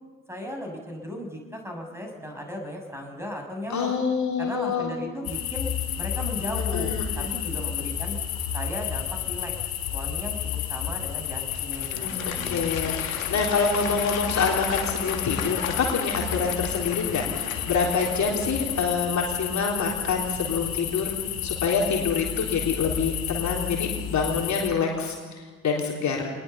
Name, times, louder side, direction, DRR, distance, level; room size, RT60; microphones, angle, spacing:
voice 1, 0.3-3.9 4.4-5.7 6.0-8.2 8.5-9.5 9.9-10.4 10.7-12.8, equal, 5° right, 2 dB, 6.9 m, -36 dB
voice 2, 3.7-4.9 6.7-7.3 11.9-21.1 21.4-26.3, left 5 dB, 45° left, 0 dB, 3.6 m, -26 dB
sound 1, 5.2-24.7, left 10 dB, 60° left, 2.2 m, -31 dB
Applause / Crowd, 11.2-19.0, left 8 dB, 80° left, 1.5 m, -36 dB
24.5 x 20.5 x 7.0 m, 1.4 s
figure-of-eight pair, 45°, 40 cm